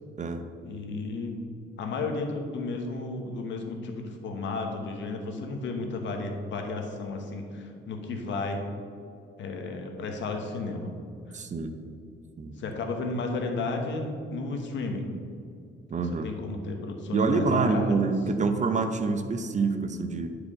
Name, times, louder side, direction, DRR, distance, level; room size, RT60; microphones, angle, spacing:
voice 1, 0.6-1.4 1.8-8.6 9.4-10.9 11.3-11.4 12.6-15.1 15.9-18.1, left 3 dB, 70° left, 3 dB, 1.1 m, -33 dB
voice 2, 11.3-11.7 12.4-12.5 15.9-16.3 17.1-20.4, right 4 dB, 35° right, 7 dB, 0.7 m, -26 dB
10.0 x 4.9 x 3.7 m, 2.4 s
cardioid pair, 90°, 20 cm